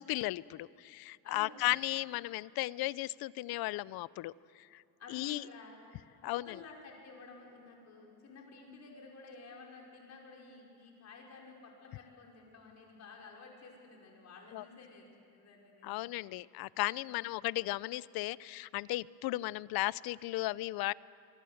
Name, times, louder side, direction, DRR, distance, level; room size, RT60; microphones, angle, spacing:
voice 1, 0.0-4.8 5.1-5.4 6.2-6.6 14.5-14.6 15.8-20.9, left 18 dB, 80° left, 21 dB, 0.6 m, -35 dB
voice 2, 1.2-1.7 5.0-5.9 6.2-16.0 17.0-17.3, left 3 dB, 45° left, -1 dB, 5.3 m, -53 dB
25.0 x 24.0 x 7.9 m, 2.6 s
cardioid pair, 155°, 37 cm